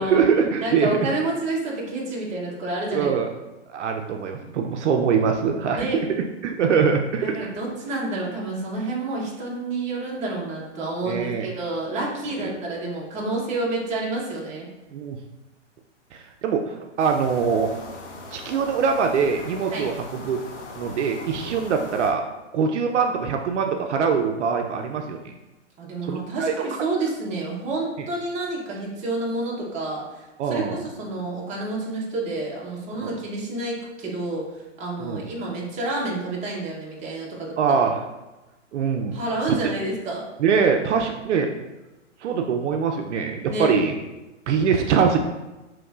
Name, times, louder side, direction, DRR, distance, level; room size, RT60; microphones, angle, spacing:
voice 1, 0.0-1.0 2.9-3.3 3.7-7.4 11.1-11.5 12.4-12.5 14.9-15.2 16.1-17.7 18.3-20.4 20.8-22.2 22.5-25.3 26.0-26.5 28.0-28.1 30.4-30.8 33.0-33.2 35.0-35.2 37.6-38.0 38.7-39.2 39.5-39.6 40.4-41.5 42.2-43.9 44.5-45.2, right 6 dB, 65° right, 4 dB, 0.5 m, -23 dB
voice 2, 0.6-3.1 5.7-6.1 7.2-14.7 19.7-19.9 25.8-30.7 31.0-37.8 39.1-40.2 43.4-43.7, right 2 dB, 20° right, -3 dB, 0.9 m, -29 dB
sound 1, 17.0-22.1, left 3 dB, 70° left, 1.1 m, -40 dB
5.2 x 3.1 x 2.3 m, 1.1 s
hypercardioid pair, 135°, 37 cm